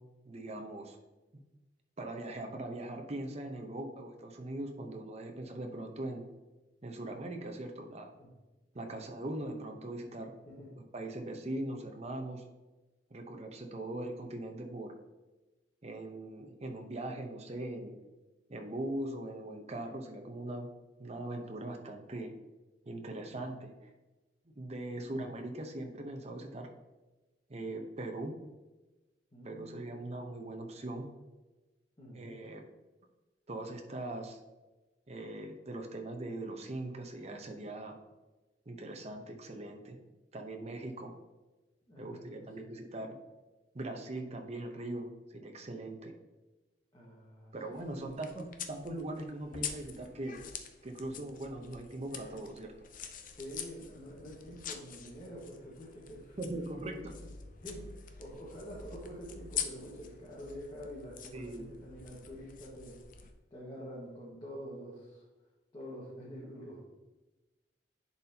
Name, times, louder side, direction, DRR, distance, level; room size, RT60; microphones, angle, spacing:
voice 1, 0.2-1.0 2.0-6.2 6.8-8.1 8.7-10.3 10.8-12.4 13.1-14.9 15.8-18.0 18.5-20.7 21.0-22.3 22.8-23.7 24.6-26.7 27.5-28.3 29.4-31.1 32.1-32.6 33.5-34.4 35.1-38.0 38.7-40.0 40.3-41.1 42.0-43.1 43.7-46.1 47.5-50.4 50.8-52.7 56.4-57.2 61.3-61.7, right 1 dB, 40° right, 4 dB, 0.8 m, -40 dB
voice 2, 29.3-30.0 32.0-32.2 38.9-39.2 41.9-42.8 46.9-48.1 51.1-51.2 53.3-56.4 56.8-63.0 63.5-65.2 65.7-66.8, equal, 25° left, -7 dB, 1.5 m, -47 dB
sound 1, 47.7-63.3, left 7 dB, 50° left, 0.5 m, -45 dB
10.5 x 4.2 x 2.8 m, 1.1 s
head